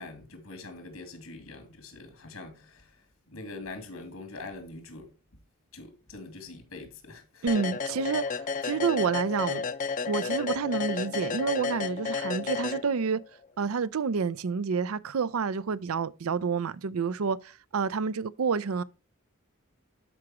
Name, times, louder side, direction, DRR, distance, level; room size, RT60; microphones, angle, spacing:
voice 1, 0.0-2.9 3.3-5.1 5.7-7.5, left 3 dB, 90° left, 2.6 m, -43 dB
voice 2, 7.4-8.3 8.6-9.6 10.1-13.2 13.6-18.8, right 5 dB, 85° right, 0.5 m, -29 dB
sound 1, 7.5-13.3, left 5 dB, 40° left, 0.5 m, -32 dB
12.0 x 4.9 x 3.0 m
head